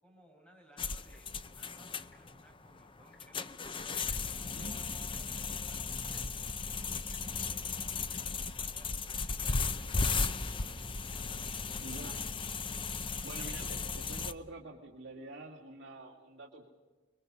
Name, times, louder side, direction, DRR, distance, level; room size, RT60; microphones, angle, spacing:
voice 1, 0.0-10.1 10.4-12.0, equal, 5° left, 1 dB, 6.0 m, -62 dB
sound 1, 0.8-14.3, left 4 dB, 25° left, 0.7 m, -36 dB
Tick-tock, 1.0-1.4 2.0-2.2 2.5-2.7 3.0-3.5 4.1-4.2 5.1-5.2 6.1-6.2 7.1-7.2 8.1-8.2 8.8-8.9 9.1-9.4 10.1-10.2 11.1-11.2 12.0-12.2 12.9-13.0, left 4 dB, 60° left, 4.3 m, -65 dB
voice 2, 11.8-12.2 13.2-16.7, right 2 dB, 60° right, -1 dB, 2.4 m, -47 dB
29.0 x 22.0 x 5.5 m, 1.3 s
head